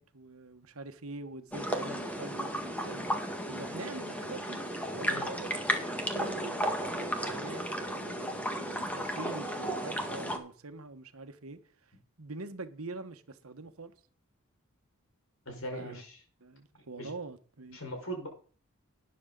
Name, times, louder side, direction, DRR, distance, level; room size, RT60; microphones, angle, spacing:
voice 1, 0.0-3.1 3.4-4.6 4.9-5.5 6.1-11.9 12.2-13.9 15.7-16.0 16.4-17.8, right 3 dB, 85° right, 1.3 m, -44 dB
sound 1, 1.5-10.4, equal, 5° left, 1.8 m, -34 dB
voice 2, 15.5-16.2 17.0-17.1 17.7-18.3, equal, 70° left, 5.3 m, -39 dB
12.5 x 9.7 x 3.9 m
head